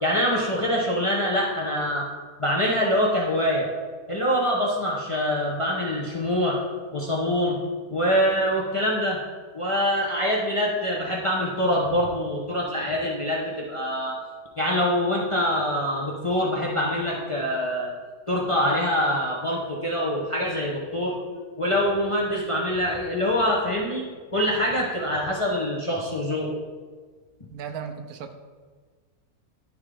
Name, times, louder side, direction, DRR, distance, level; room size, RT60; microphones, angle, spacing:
voice 1, 0.0-2.0 2.4-3.7 4.1-6.6 6.9-7.6 7.9-9.2 9.5-14.2 14.6-17.9 18.3-21.2 21.6-24.0 24.3-26.6, equal, 30° left, -4 dB, 0.6 m, -24 dB
voice 2, 27.5-28.3, right 7 dB, 80° right, 6 dB, 1.1 m, -35 dB
10.5 x 3.7 x 3.3 m, 1.5 s
omnidirectional pair, 1.6 m